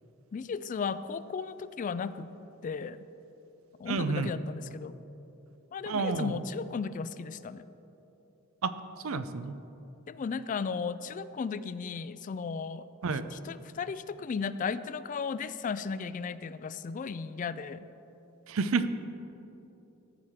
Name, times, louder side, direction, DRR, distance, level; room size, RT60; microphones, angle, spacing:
voice 1, 0.3-2.3 2.6-3.0 3.8-5.0 5.7-7.6 10.1-17.8, left 5 dB, 40° left, 15 dB, 0.3 m, -35 dB
voice 2, 3.9-4.4 5.9-6.4 8.6-8.7 9.0-9.5 13.0-13.3 18.5-18.9, right 4 dB, 75° right, 12 dB, 0.5 m, -30 dB
13.5 x 5.0 x 7.3 m, 3.0 s
head